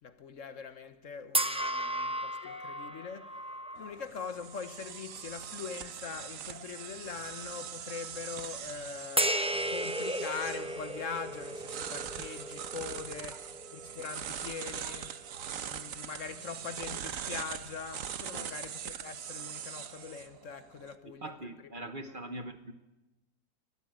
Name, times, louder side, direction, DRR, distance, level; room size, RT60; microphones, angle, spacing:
voice 1, 0.0-3.4 3.8-15.2 15.6-21.4 22.0-22.1, left 6 dB, 55° left, 1.2 m, -42 dB
sound 1, 1.3-4.9 5.4-5.6 9.2-15.6, right 1 dB, 5° right, 0.6 m, -35 dB
sound 2, 3.8-20.9, right 9 dB, 60° right, 1.2 m, -42 dB
sound 3, 5.2-5.4 6.0-6.3 6.9-8.9 9.5-9.7 10.3-12.3 12.9-13.2 13.8-14.0 14.6-14.9 15.3-18.1, equal, 85° right, 8.7 m, -58 dB
voice 2, 18.3-18.7 21.2-22.7, right 1 dB, 35° right, 1.1 m, -43 dB
21.0 x 14.0 x 8.9 m
omnidirectional pair, 1.6 m